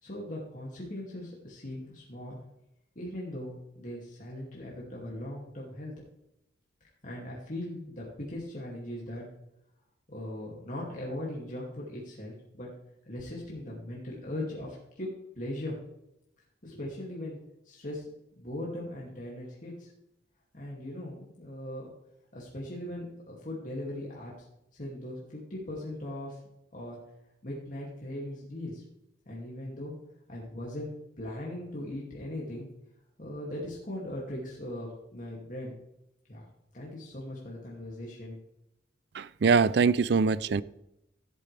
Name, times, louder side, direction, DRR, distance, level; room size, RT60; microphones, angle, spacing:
voice 1, 0.0-2.4 3.0-6.0 7.0-9.2 10.1-12.7 13.1-15.8 16.6-17.4 17.7-18.1 18.4-19.9 20.5-21.9 22.3-24.3 24.7-26.4 26.7-27.0 27.4-28.8 29.3-30.0 30.3-32.7 33.2-35.7 36.3-36.4 36.7-38.4, left 1 dB, 45° left, 2.5 m, -39 dB
voice 2, 39.1-40.6, right 5 dB, 60° right, 0.4 m, -23 dB
15.5 x 8.4 x 3.4 m
head